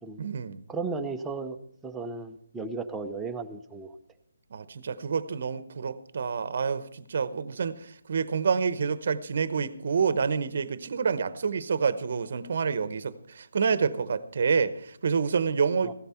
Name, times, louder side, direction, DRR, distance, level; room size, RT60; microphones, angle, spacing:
voice 1, 0.2-0.6 4.5-15.9, right 5 dB, 50° right, 0.9 m, -28 dB
voice 2, 0.7-1.6 1.8-4.0 15.8-15.9, right 4 dB, 5° right, 0.7 m, -35 dB
15.5 x 12.5 x 4.4 m
hypercardioid pair, 165°, 0 cm